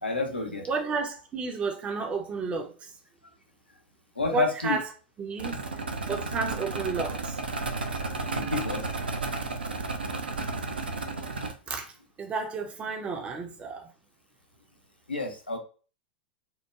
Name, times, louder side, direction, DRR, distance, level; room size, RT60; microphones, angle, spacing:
voice 1, 0.0-0.7 4.2-4.8 8.5-8.8 15.1-15.6, left 3 dB, 85° left, 0.6 m, -29 dB
voice 2, 0.7-2.9 4.3-4.9 5.2-5.6 6.1-7.4 11.0-11.1 11.7-11.9 12.2-13.9, right 4 dB, 20° right, 0.5 m, -32 dB
sound 1, 5.4-11.5, right 3 dB, 80° right, 0.4 m, -32 dB
2.9 x 2.1 x 2.3 m
figure-of-eight pair, 90°, 5 cm